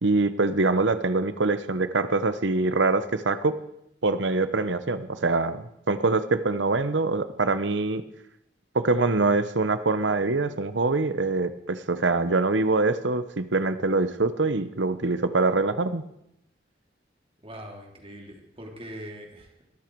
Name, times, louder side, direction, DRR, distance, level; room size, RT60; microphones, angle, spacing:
voice 1, 0.0-3.5 4.0-8.0 8.7-16.0, right 3 dB, 70° right, 12 dB, 0.9 m, -24 dB
voice 2, 17.4-19.6, equal, 30° right, 1 dB, 3.0 m, -42 dB
21.0 x 14.0 x 4.7 m, 0.80 s
head